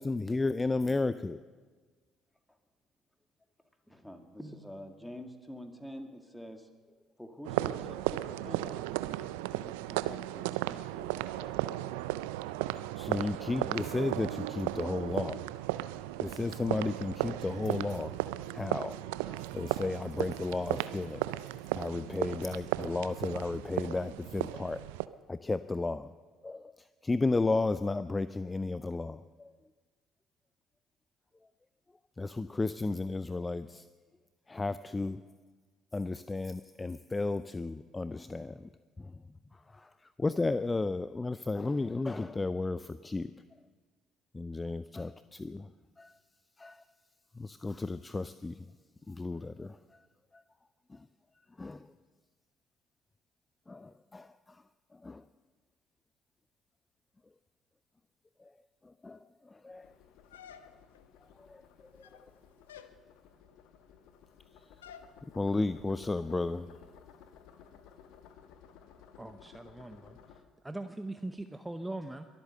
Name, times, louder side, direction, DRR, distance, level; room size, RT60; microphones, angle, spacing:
voice 1, 0.0-1.4 13.0-15.4 16.2-18.1 18.5-18.9 19.2-21.2 21.7-24.8 25.3-26.1 26.4-26.7 27.0-29.2 32.2-33.8 34.5-35.2 35.9-38.7 39.0-39.1 40.2-43.3 44.3-45.7 46.0-46.1 46.6-46.8 47.4-48.5 49.1-49.8 51.6-51.8 53.7-54.3 55.0-55.2 59.0-59.2 59.6-59.9 65.4-66.7, left 3 dB, 20° left, 14 dB, 0.4 m, -33 dB
voice 2, 3.9-6.7 7.2-11.7 12.6-12.7, equal, 5° left, 5 dB, 2.1 m, -47 dB
sound 1, 7.4-25.1, right 16 dB, 75° right, 0.4 m, -35 dB
sound 2, 59.7-70.4, left 7 dB, 65° left, 1.1 m, -57 dB
sound 3, 60.3-61.1 61.9-62.3 62.7-63.0 64.8-65.1, left 8 dB, 85° left, 0.5 m, -51 dB
voice 3, 69.2-72.3, right 2 dB, 10° right, 8 dB, 0.7 m, -41 dB
22.5 x 8.2 x 6.7 m, 1.4 s
hypercardioid pair, 55°, 0 cm